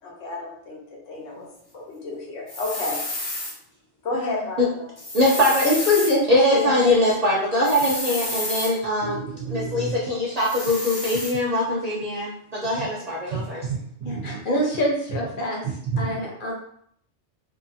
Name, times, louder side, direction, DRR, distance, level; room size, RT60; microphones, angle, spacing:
voice 1, 0.0-3.0 4.0-4.9, left 2 dB, 85° left, -2 dB, 1.1 m, -32 dB
sound 1, 2.5-3.5 5.0-6.1 7.6-8.7 10.4-11.3, left 1 dB, 35° left, 0.4 m, -30 dB
voice 2, 4.1-4.4 5.2-5.4 5.6-7.0 7.9-8.1 13.2-13.3 14.0-15.6 16.0-16.5, left 2 dB, 50° left, -2 dB, 0.8 m, -25 dB
voice 3, 5.1-5.7 6.3-9.2 9.5-13.6, left 1 dB, 50° right, -5 dB, 0.5 m, -22 dB
voice 4, 9.1-9.9 12.6-12.9 13.3-14.4 15.6-16.3, right 5 dB, 75° right, 0 dB, 0.9 m, -31 dB
2.7 x 2.3 x 2.6 m, 0.66 s
omnidirectional pair, 1.2 m